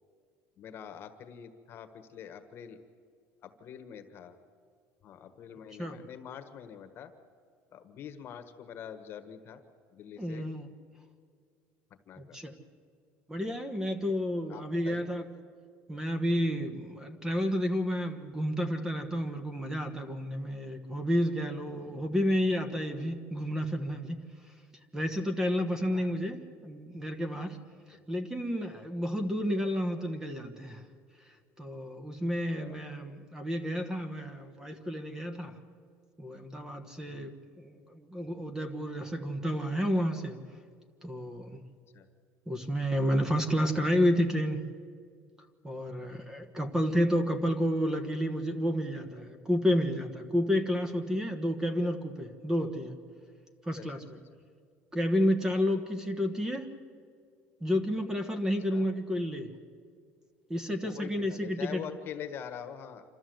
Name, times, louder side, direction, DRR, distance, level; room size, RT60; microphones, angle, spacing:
voice 1, 0.6-2.8 3.4-4.4 5.0-7.1 7.7-9.6 9.9-10.5 12.0-12.4 13.9-14.1 14.5-15.1 21.8-22.2 25.9-26.2 32.6-32.8 37.2-37.3 41.9-42.1 53.8-53.9 58.7-58.8 60.8-63.0, left 8 dB, 45° left, 8 dB, 1.4 m, -44 dB
voice 2, 10.2-10.7 12.2-12.5 13.3-15.3 15.9-24.2 24.9-27.6 28.1-30.8 31.6-35.6 36.2-40.4 41.0-41.6 42.5-44.6 45.6-53.0 53.6-54.2 54.9-56.7 57.6-59.5 60.5-61.8, equal, 10° right, 8 dB, 1.2 m, -30 dB
27.5 x 13.5 x 7.8 m, 2.2 s
cardioid pair, 145°, 5 cm